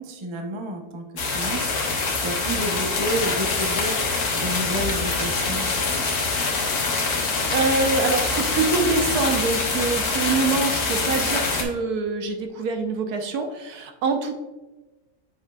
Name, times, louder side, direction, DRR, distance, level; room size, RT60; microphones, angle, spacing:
voice 1, 0.0-1.7 2.2-4.0 4.3-5.6, right 1 dB, 30° right, 3 dB, 0.5 m, -30 dB
sound 1, 1.2-11.6, left 3 dB, 80° left, 1.6 m, -24 dB
voice 2, 7.3-14.3, right 4 dB, 85° right, 5 dB, 1.3 m, -25 dB
7.3 x 6.0 x 2.3 m, 1.2 s
omnidirectional pair, 1.6 m